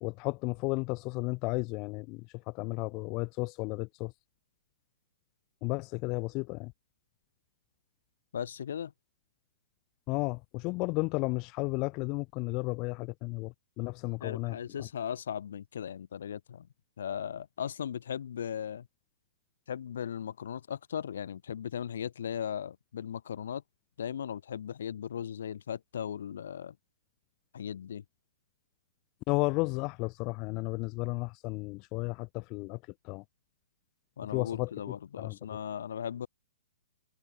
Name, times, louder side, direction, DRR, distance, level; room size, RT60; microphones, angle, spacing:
voice 1, 0.0-4.1 5.6-6.7 10.1-14.9 29.3-32.8 33.0-33.2 34.3-34.7 35.2-35.4, left 26 dB, 35° left, 1.1 m, -33 dB
voice 2, 8.3-8.9 14.2-16.7 17.0-18.9 19.7-23.6 24.0-26.8 27.5-28.0 34.2-36.3, left 8 dB, 70° left, 2.2 m, -37 dB
hypercardioid pair, 140°, 0 cm